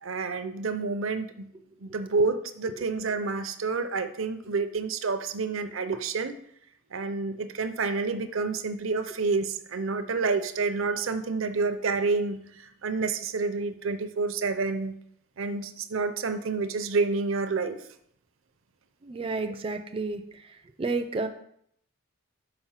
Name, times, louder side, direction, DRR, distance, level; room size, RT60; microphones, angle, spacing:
voice 1, 0.0-1.5 1.8-6.4 6.9-15.0 15.4-17.8, right 4 dB, 65° right, 10 dB, 0.6 m, -29 dB
voice 2, 19.0-20.5 20.8-21.3, right 3 dB, 25° right, 7 dB, 0.4 m, -31 dB
5.8 x 5.3 x 5.6 m, 0.69 s
head